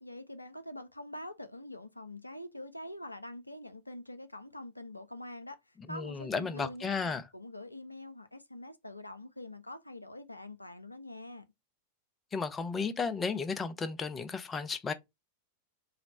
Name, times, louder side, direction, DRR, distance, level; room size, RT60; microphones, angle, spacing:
voice 1, 0.0-5.6 5.9-11.5, left 1 dB, 85° left, 0.3 m, -45 dB
voice 2, 5.8-7.2 12.3-14.9, left 5 dB, 20° left, 0.4 m, -34 dB
3.2 x 2.0 x 3.9 m
figure-of-eight pair, 90°, 0 cm